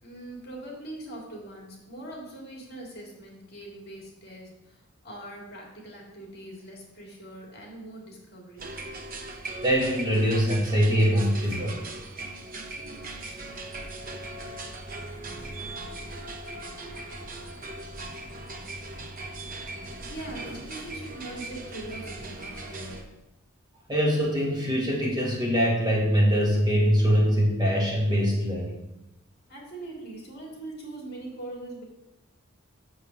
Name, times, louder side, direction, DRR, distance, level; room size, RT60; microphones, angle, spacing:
voice 1, 0.0-8.7 20.1-23.1 29.5-31.8, right 1 dB, 45° left, -1 dB, 2.3 m, -42 dB
sound 1, 8.6-23.0, right 2 dB, 40° right, 0.9 m, -39 dB
voice 2, 9.6-11.8 23.9-28.7, equal, 20° right, -4 dB, 1.9 m, -23 dB
6.3 x 5.5 x 7.0 m, 0.93 s
head